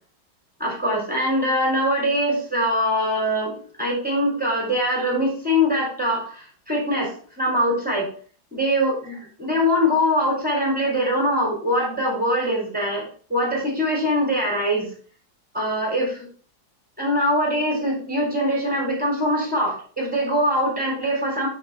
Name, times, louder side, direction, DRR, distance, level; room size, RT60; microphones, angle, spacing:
voice 1, 0.6-8.1 8.5-14.9 15.5-16.2 17.0-21.5, equal, 5° right, -2 dB, 3.3 m, -23 dB
5.9 x 4.6 x 5.9 m, 0.43 s
omnidirectional pair, 2.0 m